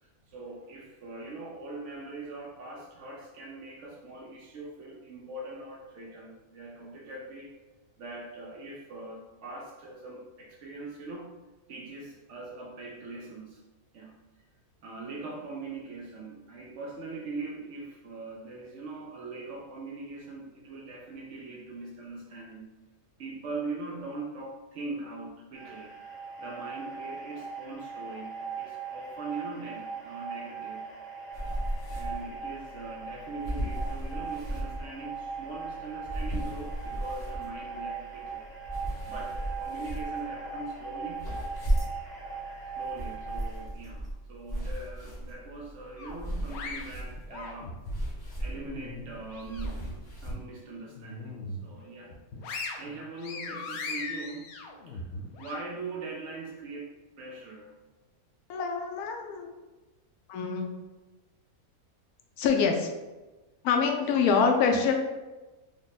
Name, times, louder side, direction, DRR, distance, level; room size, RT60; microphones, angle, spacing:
voice 1, 0.0-7.5 8.0-11.3 11.7-13.6 13.9-14.2 14.8-22.8 23.2-25.9 26.4-30.9 31.9-38.5 39.0-41.3 42.8-47.8 48.4-52.1 52.8-54.5 54.9-55.1 55.4-57.8, right 3 dB, 65° right, -1 dB, 0.8 m, -41 dB
sound 1, 25.5-43.6, right 5 dB, 45° left, 1.5 m, -40 dB
sound 2, 31.3-50.4, right 1 dB, 30° left, 1.2 m, -36 dB
sound 3, 46.0-48.0 48.4-49.9 50.3-50.4 50.9-51.7 52.1-55.5, left 3 dB, 65° left, 0.7 m, -39 dB
voice 2, 58.5-59.5 60.3-60.7 62.4-62.9 63.6-64.9, left 5 dB, 85° left, 3 dB, 1.1 m, -25 dB
3.4 x 2.1 x 3.9 m, 1.1 s
omnidirectional pair, 1.6 m